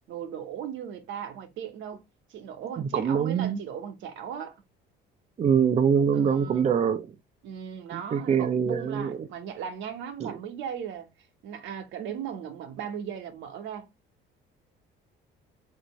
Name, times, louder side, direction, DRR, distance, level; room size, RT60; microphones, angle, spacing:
voice 1, 0.1-2.0 2.3-4.6 6.1-6.7 7.4-11.1 11.4-13.9, right 8 dB, 75° right, 0.9 m, -37 dB
voice 2, 2.9-3.6 5.4-7.1 7.9-9.3 10.2-10.3, right 7 dB, 35° right, 0.5 m, -24 dB
4.4 x 2.6 x 2.9 m
cardioid pair, 90°, 20 cm